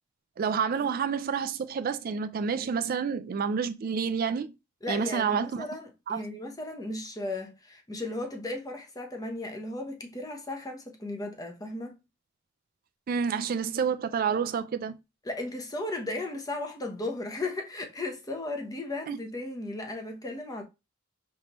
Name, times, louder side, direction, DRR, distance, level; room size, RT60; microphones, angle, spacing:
voice 1, 0.4-4.5 4.9-5.6 6.1-6.2 13.1-14.9 19.1-19.2, right 6 dB, 45° right, 0.3 m, -29 dB
voice 2, 4.8-11.9 15.2-20.6, left 2 dB, 20° left, 0.8 m, -35 dB
5.5 x 3.2 x 3.0 m
head